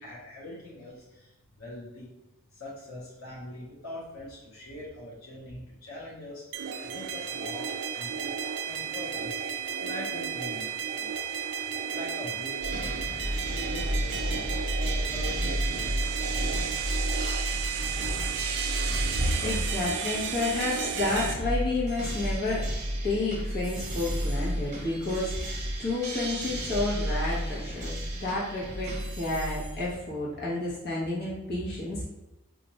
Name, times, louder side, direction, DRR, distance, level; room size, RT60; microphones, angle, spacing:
voice 1, 0.0-2.1 2.5-6.4 6.8-8.4 8.6-9.4 9.8-11.1 11.5-16.5, left 1 dB, 75° left, -5 dB, 1.0 m, -43 dB
sound 1, 6.5-21.3, right 7 dB, 50° right, 0.3 m, -33 dB
sound 2, 12.6-30.0, equal, 35° right, 0.8 m, -32 dB
voice 2, 19.4-22.7 23.0-32.1, left 2 dB, 45° left, -6 dB, 1.1 m, -30 dB
4.3 x 2.5 x 2.9 m, 1.0 s
head